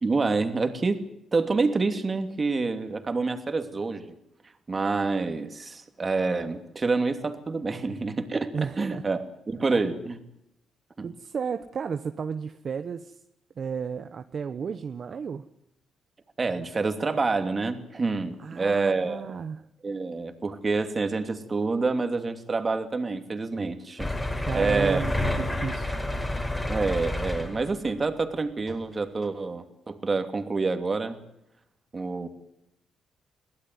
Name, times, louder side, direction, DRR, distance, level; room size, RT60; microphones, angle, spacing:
voice 1, 0.0-1.1 1.3-4.1 4.7-10.2 11.0-11.1 16.4-19.4 19.8-24.1 24.5-25.0 26.7-31.2 31.9-32.3, right 3 dB, 30° right, 7 dB, 2.8 m, -27 dB
voice 2, 8.5-9.1 9.6-10.0 11.0-13.2 13.6-15.5 18.4-19.7 24.4-26.0, right 6 dB, 50° right, 9 dB, 1.0 m, -33 dB
sound 1, 24.0-27.9 28.7-28.8 29.2-29.3, left 1 dB, 15° left, 5.0 m, -29 dB
22.5 x 16.5 x 9.7 m, 0.82 s
cardioid pair, 90°, 0 cm